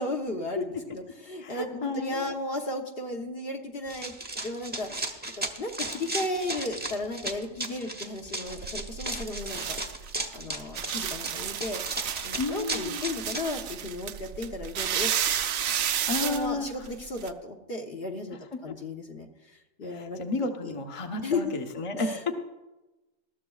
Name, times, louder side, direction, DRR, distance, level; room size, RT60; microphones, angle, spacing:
voice 1, 0.0-4.1 4.4-5.1 5.6-9.8 10.3-11.8 12.2-15.1 16.2-20.2 20.6-20.8 21.2-21.5 21.9-22.3, left 2 dB, 50° left, 2 dB, 1.1 m, -35 dB
voice 2, 1.4-2.2 12.4-13.0 16.1-16.8 18.7-18.8 19.8-22.3, left 3 dB, 30° left, 4 dB, 0.9 m, -32 dB
Run, 3.9-13.4, right 2 dB, 10° right, 0.8 m, -35 dB
sound 1, 8.5-17.3, right 9 dB, 85° right, 1.1 m, -32 dB
20.0 x 13.5 x 2.4 m, 1.1 s
omnidirectional pair, 1.4 m